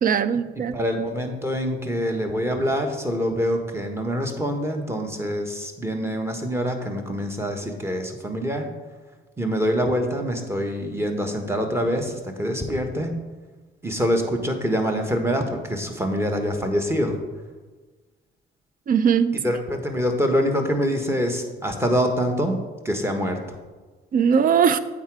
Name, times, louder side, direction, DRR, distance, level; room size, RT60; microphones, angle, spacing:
voice 1, 0.0-0.8 18.9-19.4 24.1-24.8, right 7 dB, 45° right, 14 dB, 0.5 m, -19 dB
voice 2, 0.7-8.7 9.4-13.1 13.8-17.2 19.4-22.6 22.8-23.6, equal, 15° right, 4 dB, 1.2 m, -25 dB
8.1 x 4.8 x 4.7 m, 1.3 s
cardioid pair, 90°, 20 cm